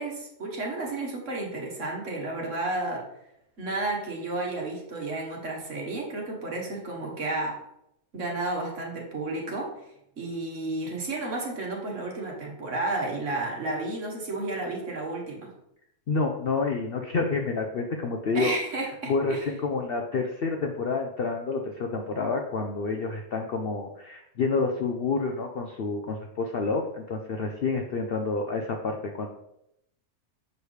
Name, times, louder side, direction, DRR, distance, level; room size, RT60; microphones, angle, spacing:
voice 1, 0.0-3.0 3.6-7.6 8.1-9.7 10.2-15.5 18.3-19.4, right 2 dB, 55° right, -1 dB, 1.7 m, -32 dB
voice 2, 16.1-18.6 19.1-29.3, left 4 dB, 60° left, 3 dB, 0.6 m, -28 dB
7.0 x 4.9 x 3.2 m, 0.81 s
omnidirectional pair, 1.6 m